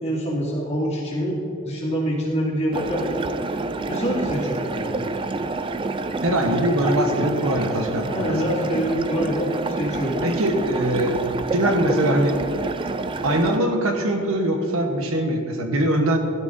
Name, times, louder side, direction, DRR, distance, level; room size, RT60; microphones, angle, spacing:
voice 1, 0.0-1.4 1.6-3.1 3.9-5.0 8.1-10.2, equal, 30° left, -7 dB, 2.6 m, -25 dB
sound 1, 2.7-13.6, right 3 dB, 25° right, 0.3 m, -28 dB
voice 2, 6.2-8.1 10.2-11.2 11.5-12.4 13.2-16.2, right 1 dB, 80° right, 4 dB, 1.1 m, -22 dB
16.0 x 12.5 x 2.7 m, 2.8 s
head